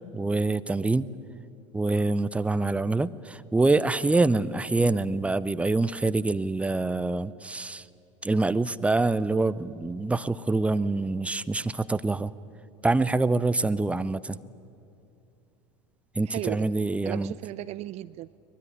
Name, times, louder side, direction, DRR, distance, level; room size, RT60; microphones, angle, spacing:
voice 1, 0.1-1.1 1.7-7.8 8.2-12.3 12.8-14.4 16.1-17.3, right 3 dB, 10° right, 16 dB, 0.7 m, -25 dB
voice 2, 16.3-16.7 17.1-18.4, right 16 dB, 45° right, 18 dB, 0.5 m, -35 dB
23.5 x 21.5 x 9.4 m, 2.6 s
figure-of-eight pair, 75°, 16 cm